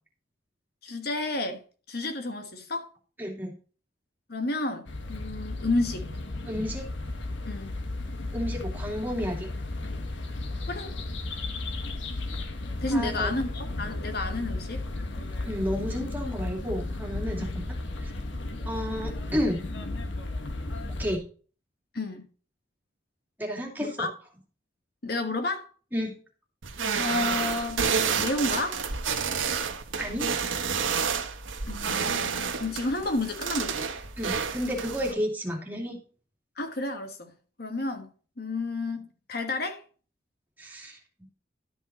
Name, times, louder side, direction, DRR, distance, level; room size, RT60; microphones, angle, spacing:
voice 1, 0.8-1.6 1.9-2.9 4.3-6.1 7.4-7.7 10.7-10.9 12.8-14.9 17.4-17.5 21.9-22.3 23.8-24.1 25.0-25.7 27.0-27.8 28.2-28.8 31.6-33.9 36.6-37.3 37.6-38.1 38.4-39.8, left 2 dB, 50° left, 1.3 m, -31 dB
voice 2, 3.2-3.5 6.5-6.9 8.3-9.5 12.9-13.4 15.4-18.1 18.7-19.7 21.0-21.2 23.4-24.1 25.9-26.1 30.0-30.3 34.2-36.0 40.6-41.0, equal, 10° right, 2.5 m, -31 dB
sound 1, 4.9-21.2, left 2 dB, 70° left, 1.4 m, -34 dB
sound 2, 26.6-35.1, right 6 dB, 85° right, 1.3 m, -29 dB
12.5 x 5.6 x 4.1 m
head